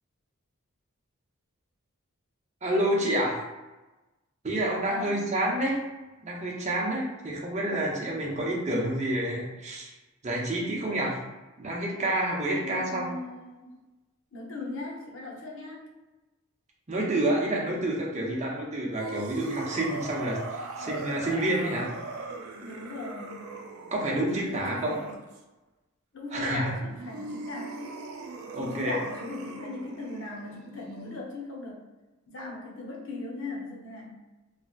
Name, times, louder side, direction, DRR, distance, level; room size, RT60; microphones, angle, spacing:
voice 1, 2.6-3.4 4.4-5.8 6.2-9.9 10.2-11.3 11.6-13.1 16.9-21.9 23.9-24.9 26.3-26.7 28.5-29.0, right 1 dB, 30° right, -3 dB, 0.7 m, -28 dB
voice 2, 4.9-5.3 12.5-13.9 14.3-15.9 22.6-23.5 24.4-25.1 26.1-28.0 28.5-31.8 32.3-34.1, left 2 dB, 60° left, -2 dB, 0.8 m, -39 dB
sound 1, 18.9-25.4 26.8-31.2, right 3 dB, 75° right, 0.4 m, -40 dB
3.1 x 2.8 x 2.4 m, 1.1 s
head